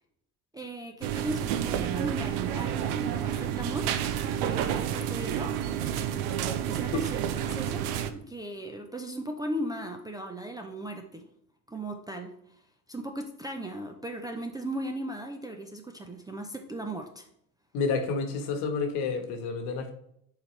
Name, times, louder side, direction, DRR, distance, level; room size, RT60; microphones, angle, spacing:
voice 1, 0.5-5.5 6.7-7.8 8.1-11.2 11.7-12.3 12.9-17.3, right 1 dB, 10° right, 2 dB, 0.5 m, -37 dB
sound 1, 1.0-8.1, right 10 dB, 80° right, 0.7 m, -30 dB
voice 2, 17.7-19.9, left 4 dB, 60° left, 6 dB, 1.3 m, -29 dB
7.1 x 4.3 x 3.2 m, 0.72 s
supercardioid pair, 95°, 45 cm